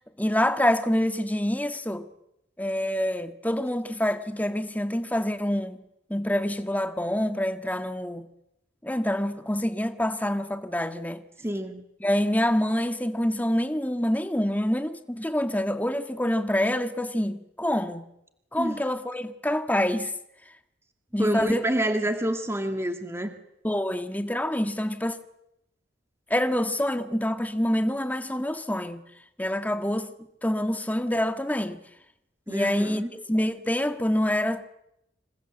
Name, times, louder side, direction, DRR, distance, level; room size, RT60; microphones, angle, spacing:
voice 1, 0.2-2.1 2.6-5.8 6.1-8.3 8.8-11.2 12.0-18.0 18.5-20.1 21.1-21.6 23.6-25.2 26.3-29.0 29.4-30.1 30.4-31.8 32.5-34.6, left 1 dB, 10° left, 1.6 m, -26 dB
voice 2, 11.4-11.8 18.6-18.8 21.2-23.3 32.5-33.1, right 1 dB, 15° right, 2.3 m, -28 dB
27.5 x 27.0 x 8.0 m
head